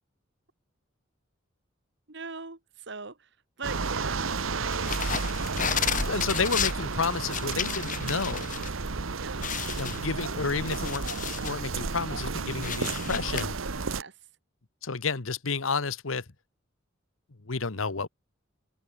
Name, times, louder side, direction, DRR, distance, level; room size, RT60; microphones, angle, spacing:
voice 1, 2.1-2.6 2.9-3.3 3.6-5.5 9.2-9.4 13.9-14.1, right 4 dB, 60° right, 1.9 m, -41 dB
sound 1, 3.6-14.0, right 4 dB, 80° right, 1.1 m, -32 dB
sound 2, 4.7-8.7 9.0-9.1 9.4-11.6 12.0-13.4, left 7 dB, 40° left, 3.4 m, -32 dB
voice 2, 6.1-8.5 9.7-11.1 11.4-13.6 14.8-16.2 17.5-18.1, left 4 dB, 80° left, 1.3 m, -31 dB
open air
head